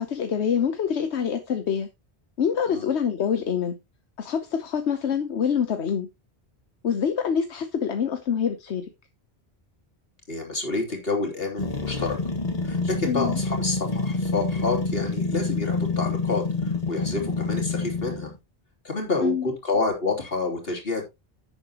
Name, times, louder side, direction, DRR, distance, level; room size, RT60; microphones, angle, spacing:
voice 1, 0.0-1.9 2.4-3.8 4.2-6.1 6.8-8.9 13.0-13.4 19.2-19.5, left 7 dB, 80° left, 8 dB, 1.2 m, -25 dB
voice 2, 10.3-12.2 12.6-18.3 18.8-21.1, left 3 dB, 60° left, 1 dB, 3.5 m, -28 dB
sound 1, 11.6-18.4, left 3 dB, 35° left, 1.8 m, -27 dB
11.0 x 8.7 x 3.0 m, 0.23 s
omnidirectional pair, 1.1 m